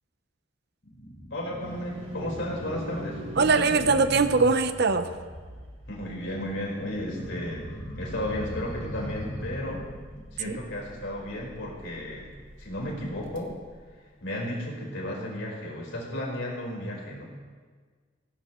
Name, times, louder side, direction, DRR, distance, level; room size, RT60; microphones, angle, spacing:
sound 1, 0.8-4.9 6.2-10.2, equal, 50° left, 4.6 m, -39 dB
voice 1, 1.3-3.2 5.9-7.7 7.9-9.8 10.3-12.3 12.6-13.5 14.2-17.2, left 1 dB, 75° left, -3 dB, 4.7 m, -34 dB
sound 2, 1.6-14.7, equal, 80° right, 2.0 m, -45 dB
voice 2, 3.4-5.1 10.4-10.6, right 4 dB, 60° right, 10 dB, 0.8 m, -22 dB
18.5 x 17.0 x 3.1 m, 1.5 s
head